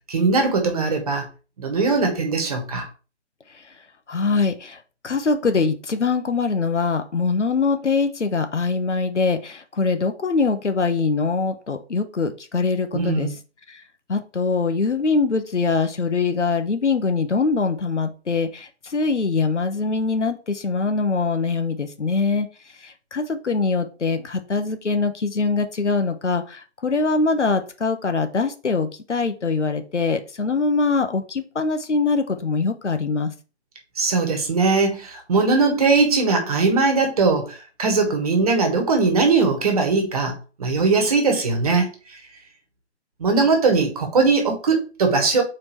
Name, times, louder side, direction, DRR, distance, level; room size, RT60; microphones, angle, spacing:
voice 1, 0.1-1.2 1.6-2.9 12.9-13.3 34.0-41.9 43.2-45.4, right 4 dB, 30° right, 1.4 m, -20 dB
voice 2, 4.1-13.3 13.7-13.8 14.1-22.5 22.8-33.3, left 4 dB, 80° left, 1.1 m, -23 dB
4.8 x 4.4 x 4.6 m
figure-of-eight pair, 155°, 35 cm